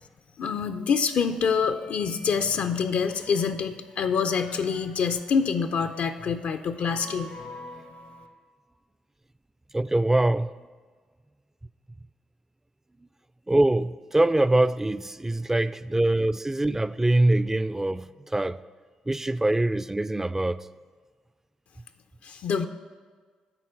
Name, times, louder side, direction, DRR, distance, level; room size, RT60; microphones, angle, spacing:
voice 1, 0.4-7.3 22.2-22.7, left 6 dB, 65° left, 0.4 m, -26 dB
sound 1, 1.7-8.3, left 1 dB, 80° left, 1.1 m, -48 dB
voice 2, 9.7-10.5 13.5-18.6 19.1-20.6, right 1 dB, 15° right, 0.3 m, -23 dB
9.8 x 4.3 x 6.2 m
hypercardioid pair, 45°, 3 cm